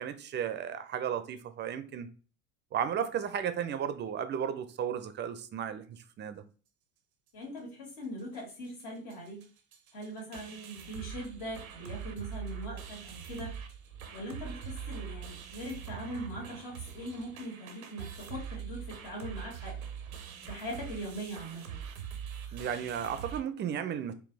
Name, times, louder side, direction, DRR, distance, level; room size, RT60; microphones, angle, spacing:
voice 1, 0.0-2.1 2.7-6.4 22.5-24.1, right 8 dB, 25° right, 0.4 m, -34 dB
voice 2, 7.3-9.4 9.9-13.6 14.1-19.8 20.4-21.8, equal, 60° left, 1.9 m, -41 dB
sound 1, 7.9-8.0 8.2-8.5 8.8-8.9 9.1-23.4, right 8 dB, 85° right, 0.6 m, -43 dB
4.1 x 2.3 x 3.2 m
hypercardioid pair, 70°, 41 cm